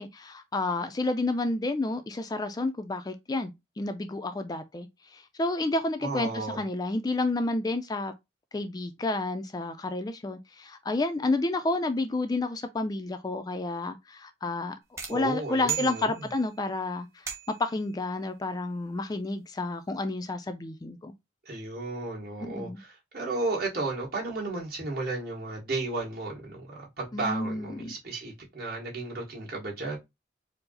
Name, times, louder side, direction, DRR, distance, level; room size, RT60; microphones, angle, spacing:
voice 1, 0.0-4.9 5.1-8.1 8.5-14.7 15.1-17.1 17.6-21.1 22.4-22.8 27.1-27.9, left 2 dB, 20° left, 0.3 m, -30 dB
voice 2, 6.0-6.6 15.1-16.2 21.5-30.0, right 2 dB, 55° right, 1.7 m, -34 dB
sound 1, 15.0-16.6 17.3-17.8, right 9 dB, 15° right, 1.0 m, -36 dB
4.7 x 2.0 x 3.8 m
head